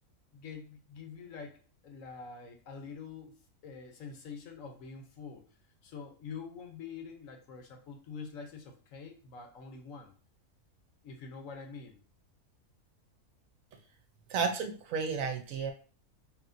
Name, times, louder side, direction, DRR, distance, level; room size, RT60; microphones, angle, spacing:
voice 1, 0.3-5.4 5.8-10.1 11.0-12.0, left 5 dB, 65° left, 4 dB, 1.1 m, -46 dB
voice 2, 14.3-15.7, right 5 dB, 65° right, 5 dB, 1.0 m, -32 dB
4.9 x 3.0 x 2.6 m, 0.39 s
omnidirectional pair, 1.6 m